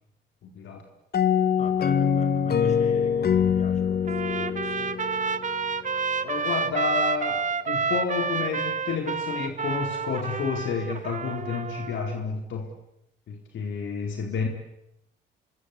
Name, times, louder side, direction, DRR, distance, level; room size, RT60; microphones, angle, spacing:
voice 1, 0.4-0.9 6.2-12.7 13.3-14.5, left 5 dB, 70° left, 3 dB, 4.2 m, -30 dB
sound 1, 1.1-5.8, left 7 dB, 50° left, 1.7 m, -24 dB
voice 2, 1.6-4.9, left 3 dB, 35° left, 7 dB, 6.2 m, -42 dB
Trumpet, 4.1-12.2, right 5 dB, 40° right, 1.5 m, -29 dB
26.5 x 23.5 x 8.4 m, 0.78 s
cardioid pair, 90°, 20 cm